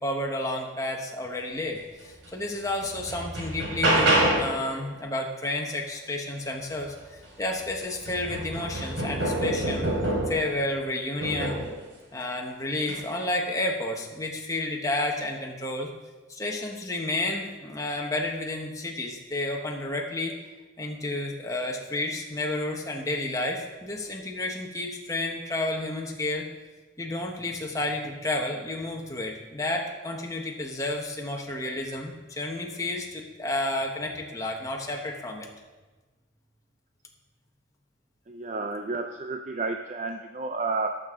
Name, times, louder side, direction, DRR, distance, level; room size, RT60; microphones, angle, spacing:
voice 1, 0.0-9.9 10.3-11.6 12.1-15.9 16.3-20.3 20.8-26.5 27.0-35.5, left 2 dB, 15° left, 0 dB, 1.2 m, -31 dB
sound 1, 2.2-2.3 2.8-4.6 7.0-7.1 7.5-10.5 11.2-11.7 12.8-13.0, right 1 dB, 80° right, 3.9 m, -26 dB
voice 2, 38.3-41.0, right 3 dB, 40° right, 5 dB, 0.5 m, -31 dB
18.0 x 6.8 x 3.7 m, 1.2 s
head